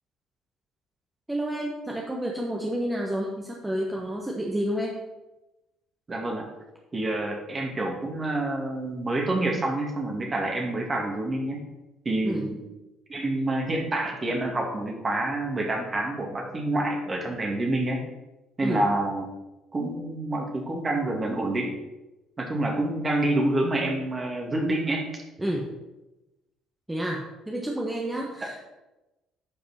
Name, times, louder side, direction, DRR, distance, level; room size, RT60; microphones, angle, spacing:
voice 1, 1.3-5.0 12.2-12.5 18.6-18.9 25.4-25.7 26.9-28.7, right 1 dB, 10° right, -1 dB, 1.3 m, -30 dB
voice 2, 6.1-6.5 6.9-11.6 12.1-12.6 13.1-18.1 18.6-19.3 19.7-21.7 22.4-25.0, right 2 dB, 30° right, 1 dB, 2.3 m, -27 dB
10.0 x 5.3 x 4.3 m, 1.0 s
hypercardioid pair, 50°, 0 cm